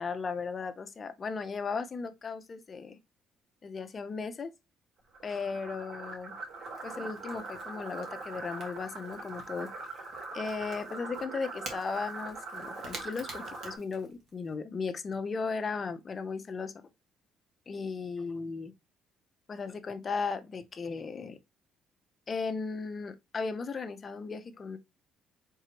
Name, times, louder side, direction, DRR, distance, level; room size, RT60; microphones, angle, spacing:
voice 1, 0.0-3.0 3.6-4.5 5.2-6.3 6.8-9.7 10.3-16.7 17.7-18.7 19.5-21.4 22.3-24.8, left 4 dB, 25° left, 0.5 m, -36 dB
Crackle / Crack, 5.0-14.5, right 3 dB, 45° right, 1.4 m, -51 dB
sound 1, 5.1-13.8, right 3 dB, 80° right, 3.0 m, -42 dB
4.6 x 3.7 x 2.8 m
cardioid pair, 170°, 0 cm